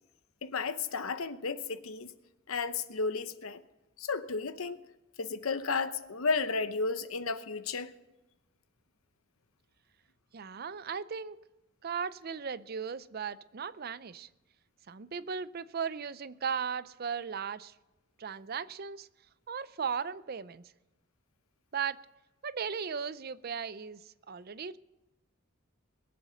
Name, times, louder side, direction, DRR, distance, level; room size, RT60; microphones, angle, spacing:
voice 1, 0.4-2.1 2.5-3.6 4.0-4.9 5.2-7.9, left 4 dB, 75° left, 0.9 m, -33 dB
voice 2, 10.3-11.4 11.8-14.3 14.9-17.7 18.2-19.1 19.5-20.7 21.7-22.0 22.4-24.8, right 6 dB, 45° right, 0.5 m, -37 dB
21.5 x 7.8 x 6.5 m
head